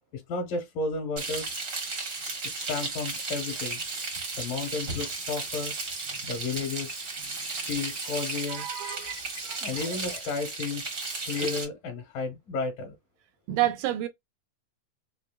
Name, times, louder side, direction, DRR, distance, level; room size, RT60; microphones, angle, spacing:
voice 1, 0.1-1.5 2.4-3.8 4.4-5.8 6.2-7.0 7.7-9.2 9.6-10.9 11.2-12.9, left 4 dB, 75° left, 2.8 m, -33 dB
Frying (food), 1.2-11.6, right 3 dB, 60° right, 0.8 m, -34 dB
voice 2, 8.5-9.2 9.4-10.0 13.5-14.1, right 14 dB, 80° right, 1.9 m, -30 dB
6.1 x 2.6 x 2.2 m
omnidirectional pair, 4.0 m